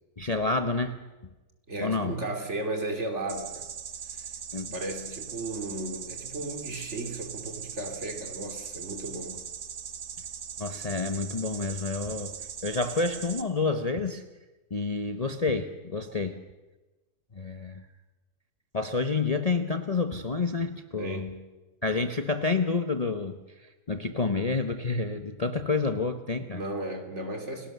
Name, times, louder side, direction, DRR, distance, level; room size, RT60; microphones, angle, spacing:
voice 1, 0.2-1.0 1.8-2.2 4.5-4.7 10.6-12.3 12.6-14.2 14.7-16.4 17.3-17.8 18.7-21.2 21.8-23.4 23.9-26.6, left 3 dB, 30° left, 7 dB, 1.0 m, -29 dB
voice 2, 1.7-3.7 4.1-4.3 4.7-9.4 21.0-21.4 26.5-27.7, right 2 dB, 50° right, 4 dB, 3.5 m, -35 dB
sound 1, 3.3-13.4, right 7 dB, 75° right, 1.7 m, -40 dB
29.5 x 18.5 x 6.8 m, 1.1 s
omnidirectional pair, 1.6 m